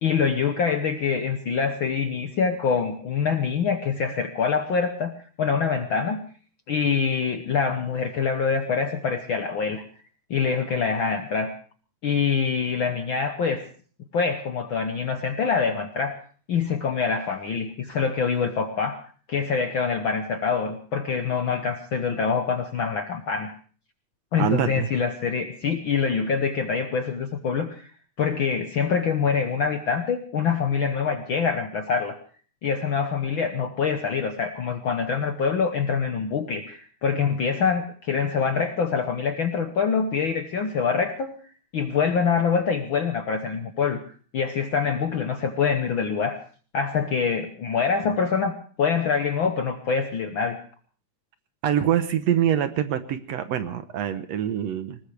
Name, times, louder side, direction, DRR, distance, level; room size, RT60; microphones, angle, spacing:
voice 1, 0.0-6.2 6.7-9.8 10.3-11.5 12.0-13.6 14.1-16.1 16.5-19.0 19.3-23.5 24.3-27.9 28.2-32.2 32.6-41.3 41.7-44.0 44.3-46.4 46.7-50.6, left 6 dB, 65° left, 7 dB, 1.3 m, -25 dB
voice 2, 24.4-24.9 51.6-55.0, right 10 dB, 70° right, 10 dB, 2.0 m, -25 dB
20.0 x 20.0 x 3.3 m, 0.42 s
omnidirectional pair, 3.4 m